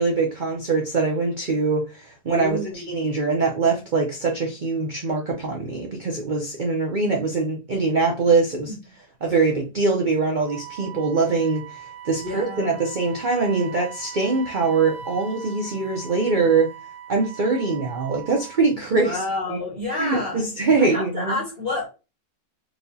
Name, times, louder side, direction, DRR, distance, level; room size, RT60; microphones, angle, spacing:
voice 1, 0.0-8.7 9.2-16.7 17.1-19.2 19.5-19.6 19.9-21.4, right 4 dB, 45° right, 0.7 m, -23 dB
voice 2, 2.4-2.9 12.2-12.9 18.9-20.4 20.8-21.9, left 2 dB, 35° left, 2.1 m, -29 dB
Wind instrument woodwind instrument, 10.4-18.7, right 8 dB, 60° right, 1.0 m, -40 dB
4.5 x 2.9 x 2.7 m
omnidirectional pair, 1.7 m